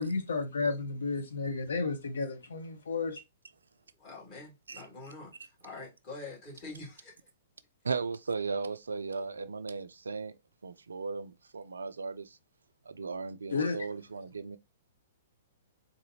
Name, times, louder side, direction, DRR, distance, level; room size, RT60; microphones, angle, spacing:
voice 1, 0.0-3.2 13.5-13.8, left 4 dB, 65° left, 0.8 m, -32 dB
voice 2, 4.0-7.1, left 3 dB, 35° left, 1.9 m, -45 dB
voice 3, 7.8-10.3 10.6-12.4 12.9-14.6, right 4 dB, 70° right, 0.3 m, -36 dB
3.8 x 2.6 x 2.7 m
figure-of-eight pair, 110°, 0 cm